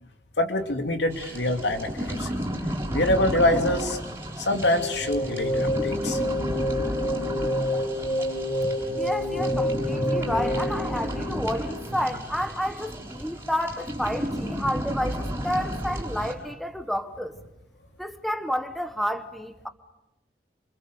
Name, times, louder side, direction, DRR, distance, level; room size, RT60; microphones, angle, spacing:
voice 1, 0.4-2.3 2.9-4.0 4.4-6.2, left 1 dB, 80° left, 3.0 m, -25 dB
sound 1, 1.1-16.3, equal, 15° right, 6.4 m, -32 dB
sound 2, 4.7-11.9, left 1 dB, 30° left, 4.9 m, -28 dB
voice 2, 9.0-17.4 18.0-19.7, equal, ahead, 1.2 m, -30 dB
28.5 x 26.5 x 6.9 m
head